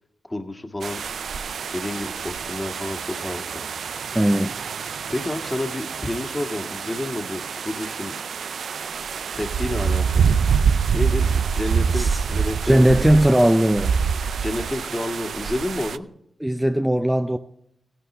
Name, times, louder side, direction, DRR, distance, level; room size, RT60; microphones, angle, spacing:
voice 1, 0.2-1.0 1.7-3.6 5.1-8.1 9.3-10.4 10.9-13.0 14.4-16.1, left 1 dB, 25° left, 2.0 m, -30 dB
sound 1, 0.8-16.0, right 6 dB, 85° right, 0.4 m, -26 dB
voice 2, 4.1-4.6 11.9-12.2 12.6-14.0 16.4-17.4, right 1 dB, 10° right, 0.6 m, -18 dB
16.5 x 11.0 x 3.4 m
cardioid pair, 40°, 0 cm